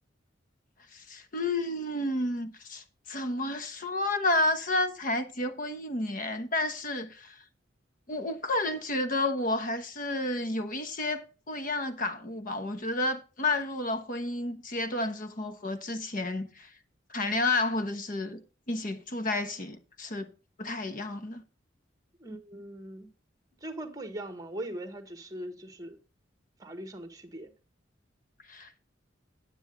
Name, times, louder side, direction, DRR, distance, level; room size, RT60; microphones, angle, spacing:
voice 1, 0.9-7.4 8.1-16.7 17.1-18.4 18.7-20.3 20.6-21.4 28.5-28.7, left 2 dB, 45° left, 1.1 m, -31 dB
voice 2, 22.2-23.1 23.6-26.0 26.6-27.5, right 1 dB, 20° right, 1.3 m, -40 dB
9.4 x 8.7 x 3.8 m
head